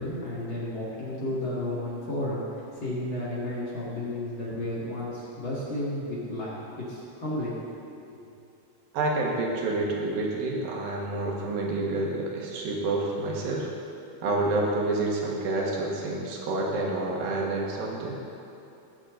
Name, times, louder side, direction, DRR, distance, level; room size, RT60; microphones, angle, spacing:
voice 1, 0.0-8.2, left 1 dB, 45° left, -7 dB, 1.8 m, -33 dB
voice 2, 8.9-13.7 14.2-18.1, right 2 dB, 65° right, -2 dB, 3.0 m, -28 dB
18.0 x 8.9 x 3.8 m, 2.7 s
omnidirectional pair, 5.0 m